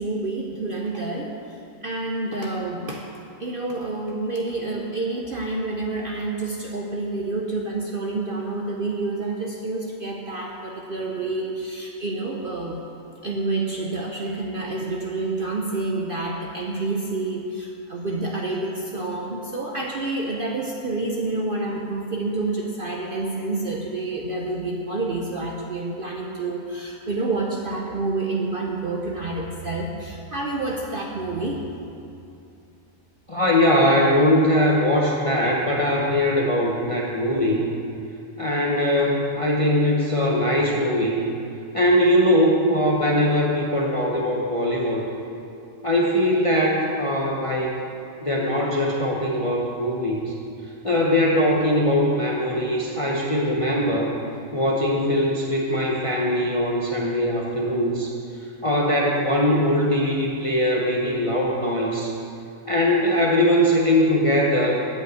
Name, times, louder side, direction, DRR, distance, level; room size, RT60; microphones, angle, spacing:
voice 1, 0.0-1.4 1.8-3.0 3.4-12.8 13.2-31.6, right 2 dB, 50° right, -1 dB, 0.7 m, -28 dB
voice 2, 33.3-37.7 38.4-41.2 41.7-45.0 45.8-47.7 48.2-50.3 50.8-54.1 54.5-58.1 58.6-62.1 62.7-65.0, left 1 dB, 30° left, -3 dB, 0.7 m, -21 dB
8.7 x 5.3 x 7.8 m, 2.7 s
omnidirectional pair, 1.6 m